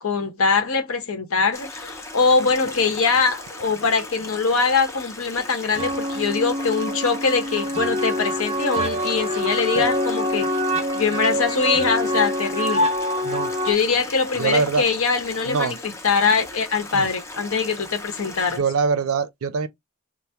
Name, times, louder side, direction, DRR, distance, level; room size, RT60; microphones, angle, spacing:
voice 1, 0.0-10.5 10.9-12.9 13.6-18.6, left 5 dB, 75° left, 0.9 m, -22 dB
Stream, 1.5-18.6, left 2 dB, 15° left, 0.4 m, -38 dB
sound 1, 5.8-13.7, equal, 30° right, 0.6 m, -25 dB
voice 2, 14.4-14.9 15.5-15.8 16.9-17.1 18.5-19.7, right 5 dB, 80° right, 0.4 m, -23 dB
3.3 x 2.0 x 2.8 m
head